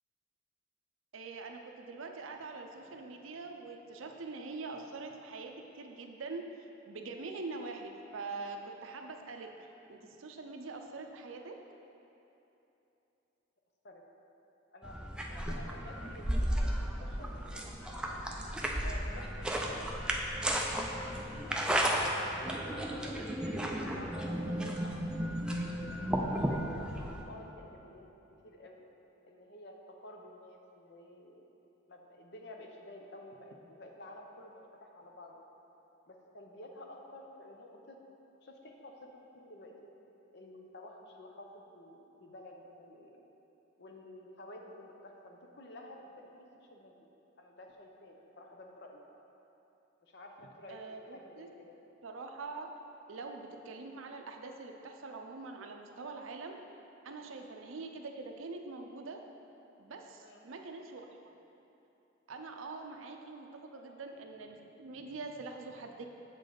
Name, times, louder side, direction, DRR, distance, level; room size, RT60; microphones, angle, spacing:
voice 1, 1.1-6.5 6.8-9.5 9.9-11.6 50.7-51.5 52.0-52.7 53.1-56.6 57.0-59.2 59.8-61.1 62.3-63.5 63.7-66.0, right 3 dB, 80° right, 4 dB, 0.5 m, -44 dB
voice 2, 14.7-18.2 18.8-19.9 20.6-23.2 23.8-25.0 26.0-28.1 28.4-28.8 29.2-31.4 31.9-35.4 36.1-38.0 38.4-39.9 40.3-43.2 43.8-46.4 46.7-46.9 47.4-49.0 50.0-50.8 51.1-51.8 57.2-57.5 60.2-60.4 63.7-64.0, left 1 dB, 55° left, 1 dB, 0.7 m, -51 dB
sound 1, 14.8-27.2, equal, 5° right, 0.3 m, -34 dB
7.3 x 5.2 x 3.8 m, 2.9 s
head